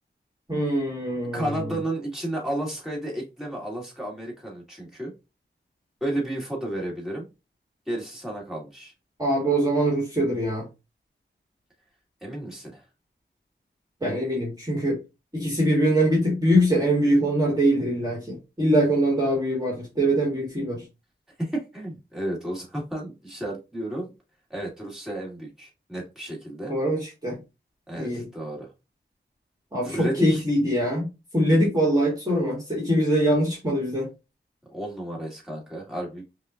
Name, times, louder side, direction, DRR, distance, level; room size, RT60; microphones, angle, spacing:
voice 1, 0.5-1.6 9.2-10.7 14.0-15.0 15.3-20.8 26.7-27.4 28.0-28.2 29.7-31.1 31.3-34.1, right 1 dB, 20° right, 1.5 m, -23 dB
voice 2, 1.3-5.1 6.0-7.3 7.9-8.9 12.2-12.8 21.4-24.1 24.5-26.7 27.9-28.7 29.8-30.4 34.7-36.2, right 1 dB, ahead, 1.7 m, -32 dB
5.3 x 2.3 x 2.5 m
wide cardioid pair, 75°, 20 cm